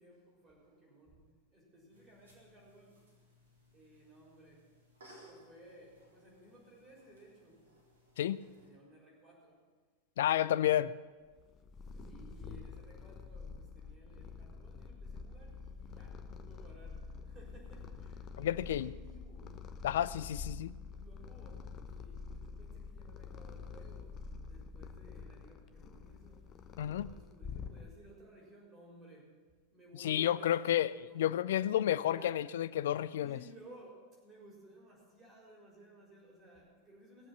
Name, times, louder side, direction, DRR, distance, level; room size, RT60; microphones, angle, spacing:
voice 1, 0.0-3.2 3.7-4.7 5.2-7.6 8.4-9.7 10.2-10.8 11.9-19.7 20.6-26.5 26.7-29.4 29.7-31.3 31.9-32.4 33.2-37.3, right 1 dB, 25° right, -2 dB, 6.3 m, -58 dB
sound 1, 1.9-8.7, equal, 65° right, 4.2 m, -62 dB
voice 2, 10.2-10.9 18.4-18.9 19.8-20.7 26.8-27.1 30.0-33.4, left 11 dB, 60° left, 18 dB, 0.4 m, -31 dB
Purr, 11.4-28.2, left 5 dB, 30° left, 0.9 m, -47 dB
20.0 x 7.9 x 7.5 m, 1.4 s
figure-of-eight pair, 90°, 0 cm